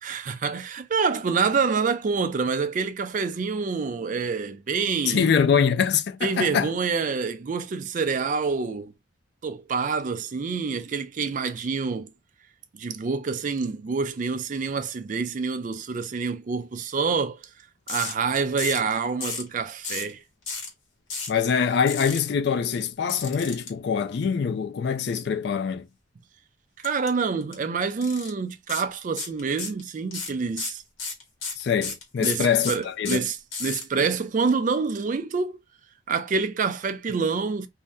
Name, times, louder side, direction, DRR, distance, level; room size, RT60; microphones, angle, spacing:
voice 1, 0.0-5.3 6.2-8.9 9.4-12.1 12.7-17.4 17.9-20.2 26.8-30.8 32.2-35.6 36.1-37.7, right 5 dB, 40° right, 0.3 m, -27 dB
voice 2, 5.1-6.7 21.3-25.9 31.6-33.3, left 6 dB, 55° left, 0.3 m, -24 dB
sound 1, 17.9-18.1 18.6-18.9 19.2-19.5 19.8-20.1 20.5-20.7 21.1-21.4 21.9-22.2 23.1-23.7 26.8-27.1 27.4-27.5 28.0-28.3 28.7-28.9 29.2-29.8 30.1-33.8, left 4 dB, 85° left, 1.3 m, -32 dB
2.7 x 2.0 x 3.4 m
head